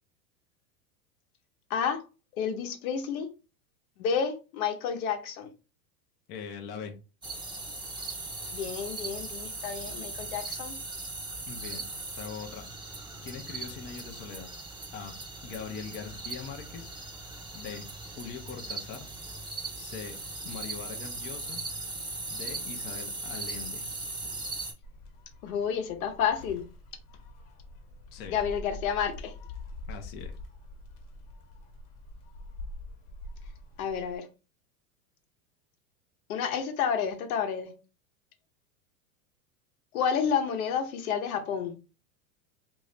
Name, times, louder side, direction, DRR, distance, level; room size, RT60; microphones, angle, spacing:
voice 1, 1.7-2.0 2.3-3.3 4.0-5.5 8.5-10.7 25.4-26.6 28.3-29.3 33.8-34.3 36.3-37.7 39.9-41.7, left 7 dB, 75° left, 0.9 m, -30 dB
voice 2, 6.3-7.0 11.5-12.6 13.2-14.5 14.9-17.0 17.5-17.9 18.2-19.1 19.7-20.2 20.4-21.6 22.3-23.9 28.1-28.4 29.9-30.3, left 6 dB, 25° left, 0.5 m, -41 dB
sound 1, 7.2-24.7, right 3 dB, 10° right, 0.7 m, -39 dB
Gull seagull, 24.8-34.2, left 2 dB, 50° left, 1.1 m, -45 dB
2.7 x 2.7 x 3.3 m
supercardioid pair, 120°, 44 cm